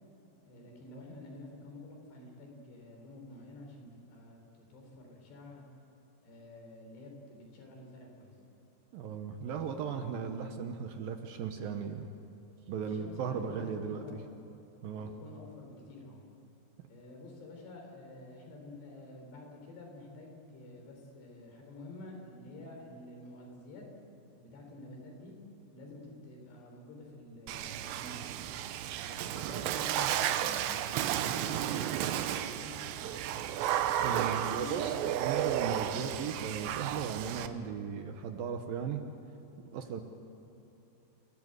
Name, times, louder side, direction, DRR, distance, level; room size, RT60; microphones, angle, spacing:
voice 1, 0.4-5.6 6.2-8.3 12.8-14.2 14.9-16.2 16.9-23.8 24.4-25.3 25.7-28.3 29.0-30.6 31.0-32.3 32.6-33.2 34.2-35.0, left 2 dB, 75° left, 1 dB, 6.3 m, -49 dB
voice 2, 8.9-12.1 12.7-14.0 14.8-15.1 34.0-39.0 39.7-40.0, right 6 dB, 70° right, 6 dB, 2.5 m, -37 dB
Water / Splash splatter, 27.5-37.5, right 11 dB, 90° right, 3.1 m, -33 dB
29.0 x 16.5 x 8.1 m, 2.8 s
omnidirectional pair, 4.9 m